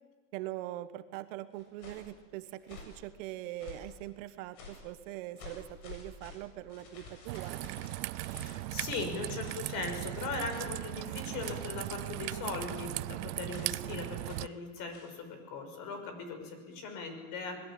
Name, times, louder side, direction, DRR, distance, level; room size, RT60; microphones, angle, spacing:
voice 1, 0.3-7.7, right 14 dB, 55° right, 12 dB, 1.3 m, -42 dB
sound 1, 1.5-2.1 2.6-3.0 3.6-4.0 4.5-4.9 5.4-9.1 9.4-9.7 10.5-10.9 11.4-11.8 12.7-13.0 13.5-13.8 14.3-14.5 14.9-15.2, left 3 dB, 60° left, 7.9 m, -51 dB
Raindrop / Trickle dribble, 7.3-14.5, right 20 dB, 75° right, 0.7 m, -38 dB
voice 2, 8.2-17.6, left 4 dB, 45° left, 7 dB, 6.0 m, -39 dB
26.0 x 21.0 x 8.7 m, 1.4 s
supercardioid pair, 155°, 47 cm